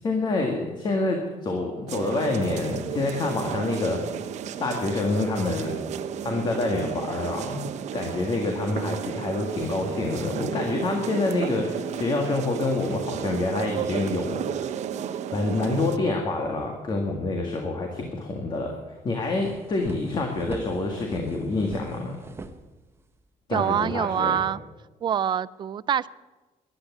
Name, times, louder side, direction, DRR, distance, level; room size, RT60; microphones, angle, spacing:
voice 1, 0.0-4.2 4.6-5.7 6.2-7.7 7.9-14.7 15.3-18.8 19.0-22.2 23.5-24.4, left 2 dB, 35° left, 2 dB, 1.9 m, -27 dB
sound 1, 1.9-16.0, right 8 dB, 60° right, 0.9 m, -33 dB
sound 2, 18.7-18.8 19.1-23.3, right 3 dB, 20° right, 0.9 m, -42 dB
voice 2, 23.5-24.6 25.0-26.1, right 9 dB, 35° right, 19 dB, 0.4 m, -25 dB
13.5 x 11.0 x 9.5 m, 1.2 s
cardioid pair, 165°, 13 cm